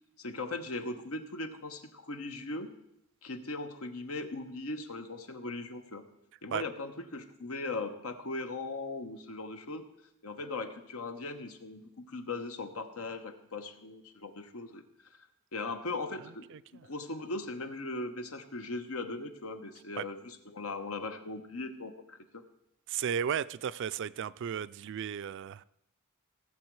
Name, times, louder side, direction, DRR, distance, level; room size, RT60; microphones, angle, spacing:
voice 1, 0.2-2.7 3.2-6.1 6.4-9.8 10.2-14.8 15.5-16.4 16.8-22.4, left 3 dB, 85° left, 1.1 m, -39 dB
voice 2, 16.5-16.8 20.0-20.1 22.9-25.6, right 8 dB, 60° right, 0.4 m, -34 dB
17.5 x 7.3 x 4.7 m
head